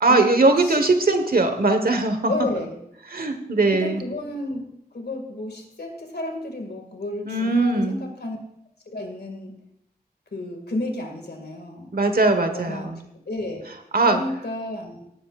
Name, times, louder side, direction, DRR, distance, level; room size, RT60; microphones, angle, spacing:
voice 1, 0.0-2.5 3.1-4.0 7.2-8.0 11.9-13.0 13.9-14.2, right 2 dB, 65° right, 7 dB, 1.4 m, -20 dB
voice 2, 2.3-2.8 3.6-8.4 8.9-9.5 10.3-11.9 12.5-12.9 13.3-13.7 14.1-15.0, left 1 dB, 80° left, 4 dB, 2.2 m, -31 dB
17.5 x 10.0 x 2.5 m, 0.77 s
wide cardioid pair, 80°, 17 cm